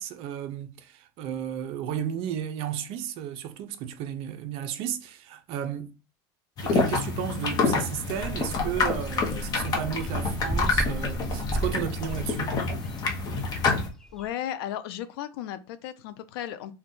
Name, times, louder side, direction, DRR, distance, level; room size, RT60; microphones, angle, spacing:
voice 1, 0.0-5.9 6.6-12.6, right 9 dB, 50° right, 0.5 m, -33 dB
sound 1, 6.6-13.9, left 4 dB, 30° left, 0.7 m, -27 dB
sound 2, 8.0-14.3, right 1 dB, 5° left, 0.3 m, -36 dB
voice 2, 14.1-16.7, left 11 dB, 80° left, 0.4 m, -35 dB
2.6 x 2.2 x 3.7 m
supercardioid pair, 135°, 12 cm